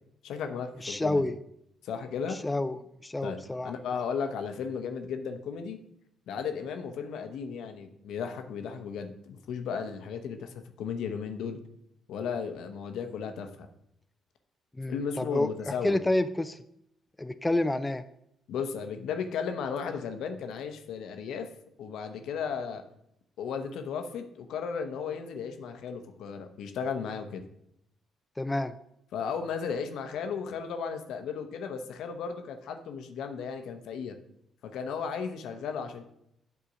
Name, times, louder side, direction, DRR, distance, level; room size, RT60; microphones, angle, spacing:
voice 1, 0.2-1.2 1.8-2.4 3.2-5.8 6.3-11.6 12.1-13.7 14.9-16.0 18.5-21.5 21.8-22.8 23.4-27.4 29.1-34.1 34.6-36.0, left 6 dB, 70° left, 6 dB, 0.8 m, -35 dB
voice 2, 0.8-1.4 2.4-2.8 3.0-3.7 14.8-16.6 17.2-18.0 28.4-28.7, left 2 dB, 15° left, 10 dB, 0.4 m, -28 dB
8.6 x 3.7 x 6.1 m, 0.76 s
hypercardioid pair, 45°, 0 cm